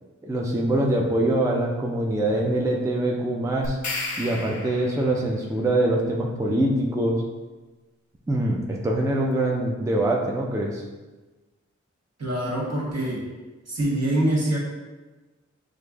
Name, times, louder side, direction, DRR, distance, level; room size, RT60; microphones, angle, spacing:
voice 1, 0.2-3.8 4.2-7.2 8.3-10.8, right 1 dB, 10° right, -1 dB, 0.4 m, -24 dB
sound 1, 3.6-5.2, left 3 dB, 70° left, 0.6 m, -33 dB
voice 2, 12.2-13.2 13.7-14.6, right 1 dB, 60° right, -4 dB, 1.1 m, -24 dB
6.3 x 2.5 x 2.3 m, 1.2 s
wide cardioid pair, 75°, 29 cm